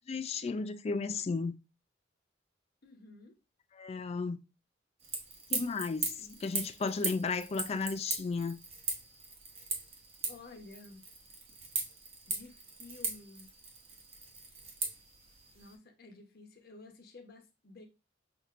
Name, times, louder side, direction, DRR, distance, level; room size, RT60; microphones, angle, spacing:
voice 1, 0.1-1.6 3.8-4.4 5.5-8.6, left 4 dB, 35° left, 0.3 m, -34 dB
voice 2, 2.8-3.4 10.3-11.1 12.3-13.5 15.5-17.9, left 3 dB, 55° left, 0.9 m, -52 dB
sound 1, 5.0-15.8, right 4 dB, 35° right, 0.9 m, -39 dB
5.8 x 2.7 x 2.4 m
head